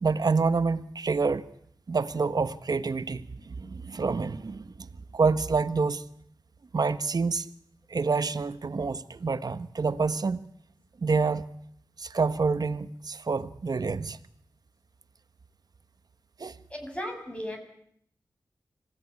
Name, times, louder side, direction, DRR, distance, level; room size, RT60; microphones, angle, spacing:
voice 1, 0.0-1.5 1.9-4.9 5.1-6.0 6.7-7.5 7.9-10.5 11.0-11.5 12.0-14.2 16.4-16.5, right 4 dB, 60° right, 13 dB, 1.3 m, -27 dB
voice 2, 16.7-17.6, equal, 15° left, 3 dB, 6.7 m, -35 dB
26.0 x 17.5 x 9.6 m, 0.69 s
wide cardioid pair, 60°, 7 cm